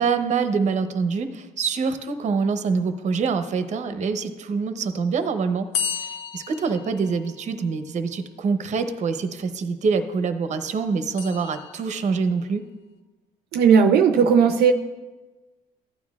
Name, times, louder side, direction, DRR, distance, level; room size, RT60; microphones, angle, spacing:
voice 1, 0.0-6.1 6.3-12.6, right 5 dB, 45° right, 9 dB, 0.8 m, -25 dB
sound 1, 5.7-7.7 11.2-12.2, left 7 dB, 75° left, 1.0 m, -33 dB
voice 2, 13.5-14.7, right 6 dB, 75° right, 6 dB, 0.6 m, -16 dB
15.0 x 9.4 x 2.4 m, 1.2 s
cardioid pair, 110°, 17 cm